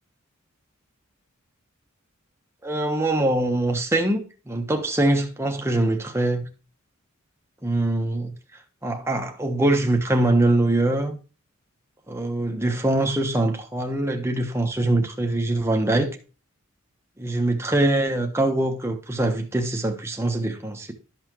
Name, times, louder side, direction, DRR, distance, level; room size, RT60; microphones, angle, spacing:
voice 1, 2.6-6.4 7.6-8.3 8.8-11.2 12.1-16.1 17.2-20.9, right 2 dB, 10° right, 1.1 m, -23 dB
12.5 x 5.7 x 3.1 m
head